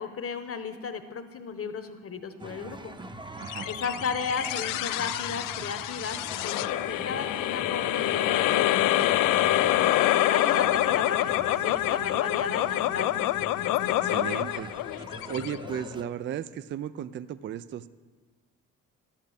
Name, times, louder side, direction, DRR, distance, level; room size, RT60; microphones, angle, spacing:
voice 1, 0.0-2.9 3.6-9.9 10.3-13.1, left 5 dB, 35° left, 10 dB, 1.1 m, -35 dB
sound 1, 2.4-16.0, right 2 dB, 10° right, 0.8 m, -44 dB
voice 2, 3.4-3.7 13.9-14.7 15.3-17.9, right 10 dB, 30° right, 16 dB, 0.4 m, -35 dB
sound 2, 3.5-16.1, left 14 dB, 60° left, 0.5 m, -26 dB
12.0 x 8.2 x 3.5 m, 1.4 s
hypercardioid pair, 45°, 38 cm